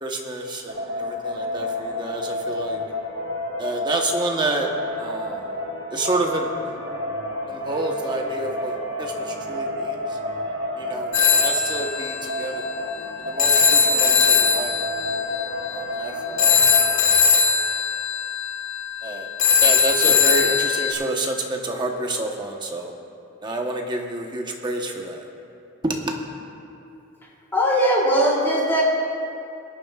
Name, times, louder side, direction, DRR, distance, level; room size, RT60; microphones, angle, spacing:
voice 1, 0.0-2.8 3.6-4.7 5.0-5.5 5.9-6.8 7.5-10.2 10.8-12.7 13.0-14.8 15.7-16.6 19.0-19.3 19.6-22.9 23.4-25.3 25.8-26.1, right 2 dB, 20° right, 1 dB, 1.0 m, -29 dB
sound 1, 0.7-17.0, left 1 dB, 55° right, 2.5 m, -30 dB
Telephone, 11.1-20.9, left 6 dB, 65° left, 1.4 m, -20 dB
voice 2, 27.5-28.8, equal, 10° left, -5 dB, 2.8 m, -19 dB
21.5 x 10.5 x 2.4 m, 2.7 s
head